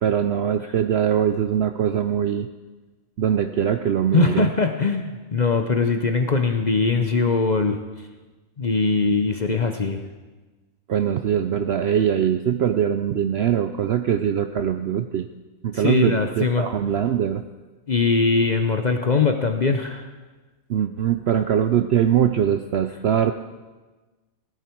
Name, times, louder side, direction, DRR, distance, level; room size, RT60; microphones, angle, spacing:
voice 1, 0.0-2.5 3.2-4.5 10.9-15.3 15.6-17.4 20.7-23.3, right 9 dB, 65° right, 9 dB, 0.6 m, -22 dB
voice 2, 4.1-7.8 8.6-10.0 15.7-16.7 17.9-20.1, left 4 dB, 40° left, 5 dB, 0.7 m, -21 dB
16.5 x 13.0 x 4.5 m, 1.3 s
omnidirectional pair, 1.5 m